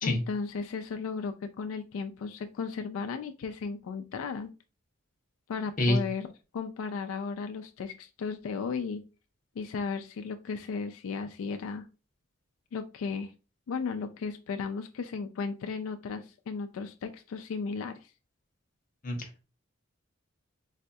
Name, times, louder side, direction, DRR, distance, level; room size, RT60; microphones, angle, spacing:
voice 1, 0.0-4.5 5.5-6.3 6.5-9.0 9.6-11.9 12.7-13.3 13.7-18.0, left 5 dB, 85° left, 6 dB, 0.3 m, -35 dB
voice 2, 19.0-19.4, left 1 dB, 40° left, 3 dB, 0.8 m, -27 dB
4.0 x 2.7 x 2.2 m, 0.31 s
head